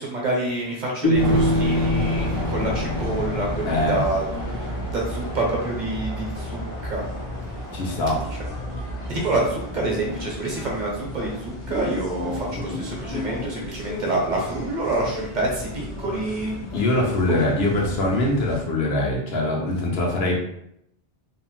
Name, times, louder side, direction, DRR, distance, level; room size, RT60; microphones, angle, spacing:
voice 1, 0.0-4.6 4.9-7.0 9.1-16.5 17.3-17.6, right 2 dB, 50° right, -2 dB, 0.8 m, -27 dB
sound 1, 1.0-4.2, left 1 dB, 25° left, 0.4 m, -24 dB
sound 2, 1.1-12.0, equal, 25° right, 0.6 m, -33 dB
sound 3, 2.3-18.6, left 1 dB, 50° left, 0.8 m, -34 dB
voice 2, 3.7-4.1 7.7-8.2 16.7-20.4, left 1 dB, 75° left, -2 dB, 1.0 m, -23 dB
2.7 x 2.0 x 2.9 m, 0.75 s
omnidirectional pair, 1.0 m